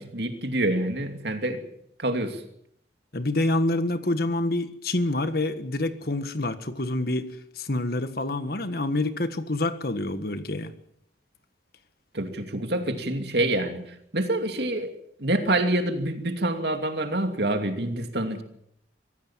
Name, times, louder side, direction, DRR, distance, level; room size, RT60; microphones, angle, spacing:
voice 1, 0.0-1.6 2.0-2.4 12.1-14.9 15.2-18.4, right 1 dB, 60° right, 6 dB, 2.6 m, -27 dB
voice 2, 3.1-7.3 7.6-10.7, left 2 dB, 55° left, 10 dB, 1.6 m, -27 dB
24.0 x 16.0 x 7.5 m, 0.70 s
head